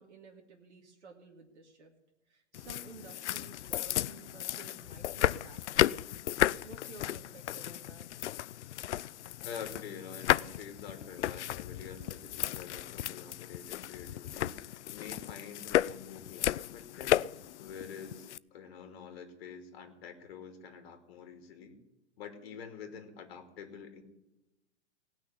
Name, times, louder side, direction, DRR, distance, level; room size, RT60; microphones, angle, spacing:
voice 1, 0.0-1.9 2.3-6.0 6.6-8.1 18.0-18.2, right 4 dB, 75° right, 1 dB, 2.3 m, -53 dB
sound 1, 2.5-18.4, left 13 dB, 80° left, 0.5 m, -34 dB
voice 2, 9.4-17.2 17.6-21.8 22.2-24.0, left 6 dB, 60° left, 6 dB, 2.6 m, -47 dB
18.5 x 6.3 x 9.9 m, 0.95 s
hypercardioid pair, 120°, 34 cm